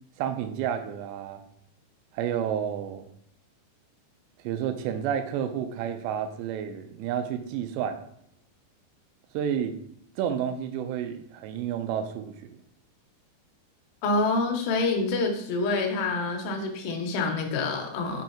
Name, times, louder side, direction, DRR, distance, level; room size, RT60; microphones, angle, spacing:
voice 1, 0.2-1.4 2.1-3.1 4.4-8.0 9.3-9.7 10.2-12.4, right 9 dB, 85° right, 8 dB, 2.7 m, -30 dB
voice 2, 14.0-18.2, left 3 dB, 80° left, 2 dB, 2.9 m, -27 dB
6.3 x 6.0 x 2.9 m, 0.69 s
omnidirectional pair, 5.2 m